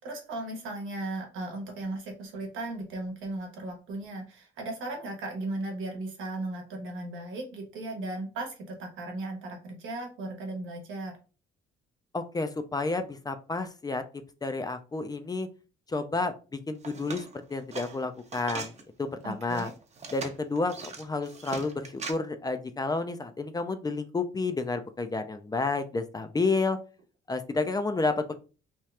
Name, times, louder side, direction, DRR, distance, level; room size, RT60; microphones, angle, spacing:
voice 1, 0.0-11.1 19.2-19.7, right 2 dB, 90° right, 3 dB, 0.9 m, -36 dB
voice 2, 12.1-14.0 14.4-15.5 15.9-16.3 16.7-18.7 19.0-19.7 20.1-26.8 27.3-28.4, left 3 dB, 20° left, 9 dB, 0.3 m, -30 dB
sound 1, 16.8-18.8 19.3-22.1, right 4 dB, 35° right, 0.6 m, -40 dB
2.9 x 2.3 x 3.2 m, 0.35 s
cardioid pair, 90°, 20 cm